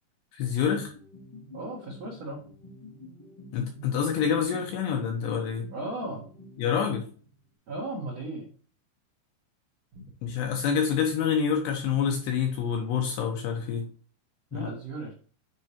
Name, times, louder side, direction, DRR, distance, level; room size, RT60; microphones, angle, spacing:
voice 1, 0.3-0.9 3.5-5.7 6.6-7.1 10.2-13.9 14.5-14.7, left 7 dB, 80° left, 3 dB, 2.6 m, -27 dB
sound 1, 0.7-7.4, left 1 dB, 15° left, 0.9 m, -48 dB
voice 2, 1.5-2.4 5.7-6.3 7.7-8.5 9.9-10.0 14.5-15.1, right 2 dB, 75° right, -3 dB, 1.5 m, -36 dB
9.4 x 4.8 x 2.8 m, 0.42 s
omnidirectional pair, 5.7 m